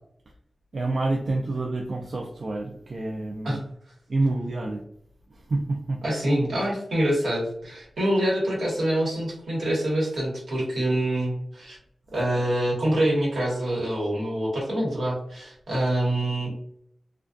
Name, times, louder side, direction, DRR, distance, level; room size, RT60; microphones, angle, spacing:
voice 1, 0.7-3.6 4.1-4.8 5.3-6.0, right 2 dB, 65° right, 1 dB, 0.3 m, -28 dB
voice 2, 6.0-11.8 12.1-16.5, right 1 dB, 90° right, -4 dB, 1.1 m, -25 dB
2.5 x 2.2 x 2.3 m, 0.70 s
cardioid pair, 60°, 0 cm